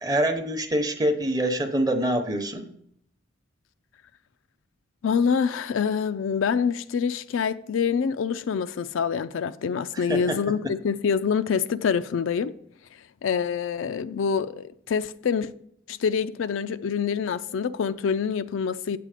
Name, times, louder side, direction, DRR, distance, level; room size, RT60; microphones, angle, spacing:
voice 1, 0.0-2.7 9.9-10.4, right 1 dB, 20° right, 0.8 m, -25 dB
voice 2, 5.0-12.5 13.2-15.5 15.9-19.0, left 6 dB, 75° left, 0.4 m, -26 dB
8.2 x 7.6 x 5.0 m
head